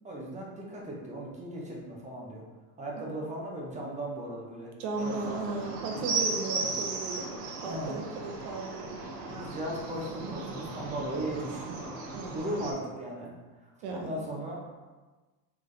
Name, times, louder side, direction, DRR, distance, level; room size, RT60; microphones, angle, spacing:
voice 1, 0.0-2.4 2.8-4.7 5.0-5.4 5.9-6.2 6.6-6.7 7.6-8.0 9.3-11.7 12.3-13.3 13.6-14.6, right 1 dB, 15° right, -2 dB, 0.8 m, -37 dB
voice 2, 4.8-7.3 7.6-9.0 12.1-12.3 13.8-14.3, right 3 dB, 85° right, 2 dB, 1.0 m, -36 dB
sound 1, 5.0-12.7, right 3 dB, 65° right, 1.0 m, -36 dB
4.0 x 3.5 x 3.2 m, 1.2 s
cardioid pair, 140°, 44 cm